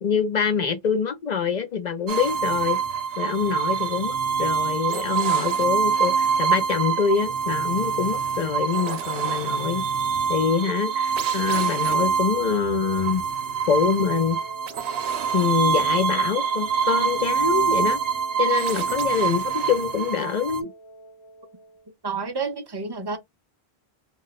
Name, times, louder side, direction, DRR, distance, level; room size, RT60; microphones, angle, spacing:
voice 1, 0.0-2.8 3.2-9.8 10.3-13.2 13.7-14.4 15.3-18.0 18.4-20.7, left 6 dB, 55° left, 0.6 m, -25 dB
sound 1, 2.1-20.6, right 6 dB, 75° right, 0.8 m, -25 dB
Wind instrument woodwind instrument, 14.0-21.9, equal, 30° left, 1.0 m, -45 dB
voice 2, 22.0-23.2, right 4 dB, 35° right, 0.4 m, -29 dB
2.3 x 2.1 x 3.9 m
omnidirectional pair, 1.0 m